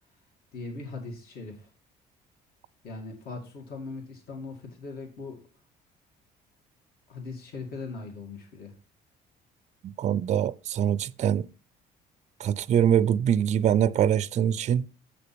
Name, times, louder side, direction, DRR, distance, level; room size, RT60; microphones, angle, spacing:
voice 1, 0.5-1.7 2.8-5.4 7.1-8.7, left 3 dB, 65° left, 2.5 m, -39 dB
voice 2, 9.8-11.5 12.4-14.9, right 9 dB, 45° right, 0.4 m, -24 dB
7.7 x 6.7 x 5.9 m
cardioid pair, 110°, 17 cm